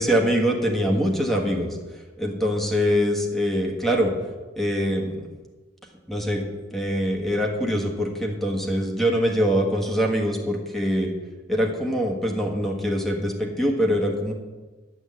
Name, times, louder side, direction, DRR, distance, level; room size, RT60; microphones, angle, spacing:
voice 1, 0.0-1.8 2.2-4.1 4.6-5.3 6.1-11.1 11.5-14.3, equal, ahead, 0 dB, 1.5 m, -23 dB
10.5 x 6.3 x 7.7 m, 1.3 s
head